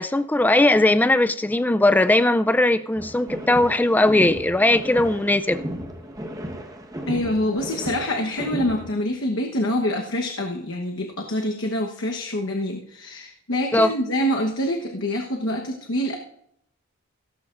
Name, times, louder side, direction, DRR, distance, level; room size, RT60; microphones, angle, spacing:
voice 1, 0.0-5.6 13.7-13.9, left 1 dB, 10° left, 11 dB, 0.3 m, -19 dB
sound 1, 3.0-9.0, equal, 15° right, 1.2 m, -34 dB
voice 2, 7.1-16.2, left 1 dB, 60° left, 1 dB, 1.1 m, -26 dB
16.5 x 14.0 x 2.5 m, 0.72 s
head